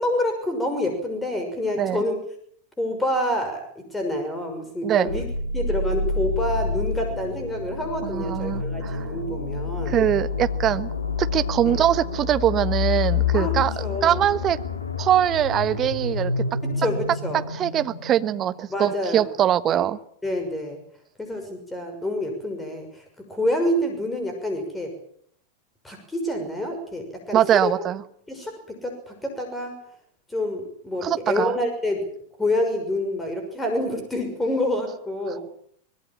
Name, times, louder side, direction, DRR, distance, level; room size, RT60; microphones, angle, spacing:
voice 1, 0.0-2.2 2.8-3.6 3.9-5.2 5.5-10.0 11.6-11.8 13.3-13.5 13.8-14.2 16.6-17.4 18.7-19.2 19.7-19.8 20.2-20.8 21.2-23.0 23.3-24.9 25.8-27.7 28.3-29.7 30.3-32.1 32.4-35.4, left 1 dB, 10° left, 4 dB, 6.3 m, -27 dB
sound 1, 5.1-18.8, left 4 dB, 75° left, 2.6 m, -28 dB
voice 2, 8.0-9.1 9.8-10.9 11.2-13.7 14.0-14.6 15.0-16.4 17.5-20.0 27.3-28.0 31.0-31.5, right 11 dB, 30° right, 12 dB, 1.3 m, -22 dB
24.5 x 21.5 x 7.5 m, 0.65 s
figure-of-eight pair, 90°, 0 cm